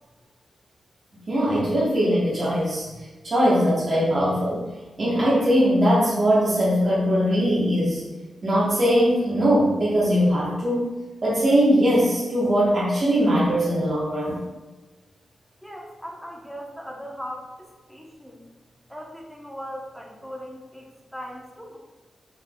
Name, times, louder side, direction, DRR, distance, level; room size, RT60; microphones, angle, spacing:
voice 1, 1.3-2.9 3.2-4.6 5.0-8.0 8.4-10.9 11.2-14.4, equal, 50° right, -8 dB, 1.3 m, -20 dB
voice 2, 15.6-18.4 18.9-21.8, equal, 5° left, -1 dB, 1.0 m, -39 dB
5.6 x 3.9 x 2.4 m, 1.2 s
cardioid pair, 80°, 0 cm